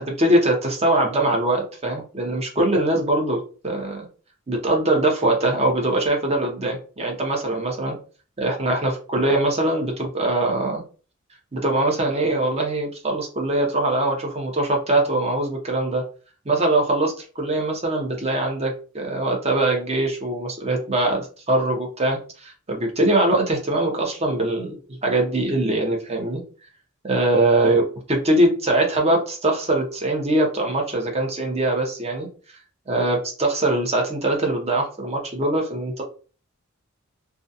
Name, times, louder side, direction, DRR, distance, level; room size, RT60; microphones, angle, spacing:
voice 1, 0.0-4.1 4.5-8.0 8.4-10.8 11.5-16.0 16.5-26.4 27.0-27.8 28.1-32.3 32.9-36.0, right 2 dB, 30° right, 1 dB, 0.7 m, -22 dB
2.3 x 2.3 x 2.6 m, 0.37 s
head